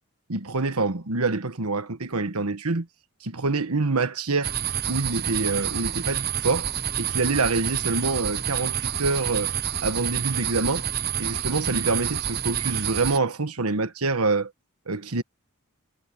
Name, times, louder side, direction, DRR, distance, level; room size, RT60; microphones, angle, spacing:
voice 1, 0.3-2.9 3.2-4.6 4.9-6.7 7.0-9.5 9.8-10.9 11.2-14.5 14.9-15.2, right 3 dB, 80° right, 1.4 m, -26 dB
sound 1, 4.4-13.2, right 9 dB, 45° right, 0.9 m, -28 dB
head